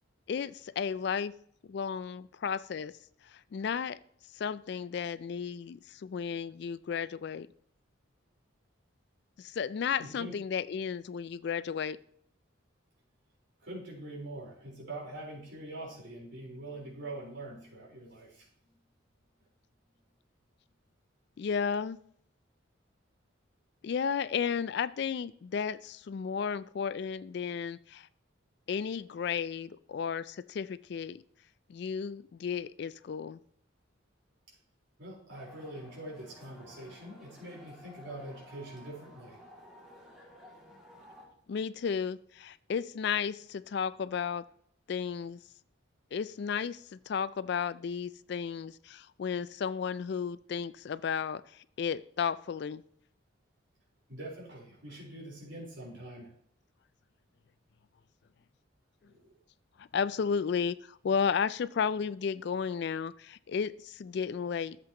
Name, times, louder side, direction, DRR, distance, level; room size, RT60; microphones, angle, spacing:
voice 1, 0.3-1.3 1.6-2.9 3.2-4.0 4.3-7.5 9.4-12.0 21.4-22.0 23.8-28.1 28.7-31.2 31.7-33.4 41.5-44.4 44.9-45.4 46.1-52.8 59.8-64.8, left 6 dB, 55° left, 17 dB, 0.3 m, -33 dB
voice 2, 10.0-10.4 13.6-18.5 35.0-39.4 54.1-56.3 59.0-59.3, right 1 dB, 65° right, -4 dB, 4.0 m, -44 dB
sound 1, 35.3-41.2, left 1 dB, ahead, 2.4 m, -53 dB
12.5 x 7.8 x 2.9 m, 0.63 s
head